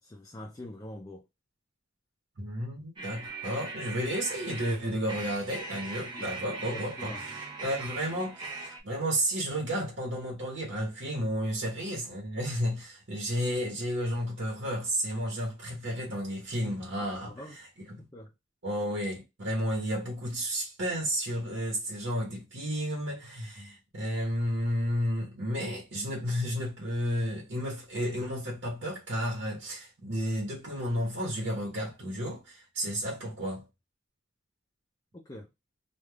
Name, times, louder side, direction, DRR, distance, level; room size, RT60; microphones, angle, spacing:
voice 1, 0.0-1.3 6.1-6.3 6.6-7.2 16.9-17.6 17.9-18.3 35.1-35.5, left 1 dB, 20° left, 0.4 m, -45 dB
voice 2, 2.4-7.1 7.6-17.3 18.6-33.6, equal, 90° right, 1.0 m, -32 dB
sound 1, 3.0-8.8, right 3 dB, 25° right, 0.9 m, -40 dB
3.3 x 2.4 x 2.3 m
head